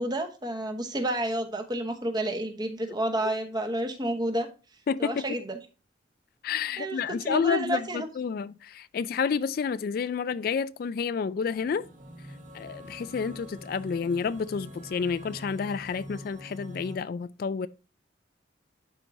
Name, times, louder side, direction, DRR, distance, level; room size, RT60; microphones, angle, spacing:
voice 1, 0.0-4.5 5.0-5.6 6.8-8.1, right 1 dB, 20° right, 0.9 m, -30 dB
voice 2, 4.9-5.2 6.4-11.9 12.5-17.7, left 6 dB, 50° left, 0.3 m, -30 dB
sound 1, 11.5-17.0, equal, 40° right, 1.5 m, -44 dB
11.5 x 4.4 x 2.6 m
head